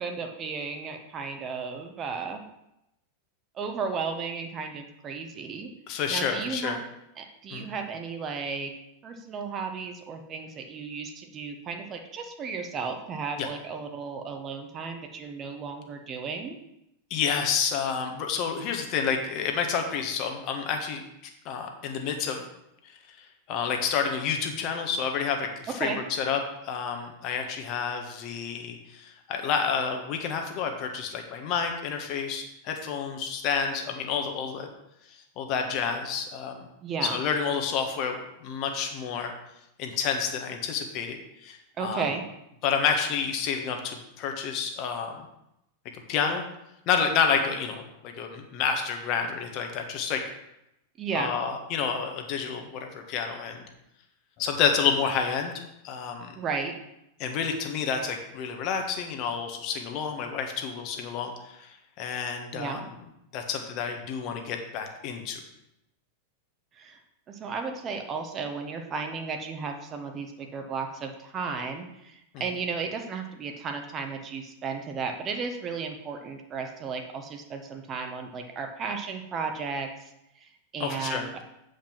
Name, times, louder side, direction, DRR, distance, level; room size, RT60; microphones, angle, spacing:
voice 1, 0.0-2.4 3.5-5.7 6.1-6.9 7.2-8.7 9.0-16.6 25.8-26.0 36.8-37.1 41.8-42.2 51.0-51.3 56.4-56.7 62.5-62.8 66.8-67.0 67.3-79.9 80.4-81.3, right 5 dB, 30° right, 4 dB, 1.2 m, -34 dB
voice 2, 5.9-6.8 7.5-7.7 13.4-13.5 17.1-21.0 21.4-22.4 23.2-34.7 35.1-36.6 37.0-39.3 39.8-42.0 42.6-45.2 45.9-46.4 46.9-50.2 51.1-53.6 54.4-55.5 55.8-56.3 57.2-62.8 63.3-65.4 72.3-72.4 80.8-81.4, left 6 dB, 40° left, 4 dB, 1.4 m, -29 dB
8.8 x 5.2 x 6.1 m, 0.85 s
figure-of-eight pair, 90°, 0 cm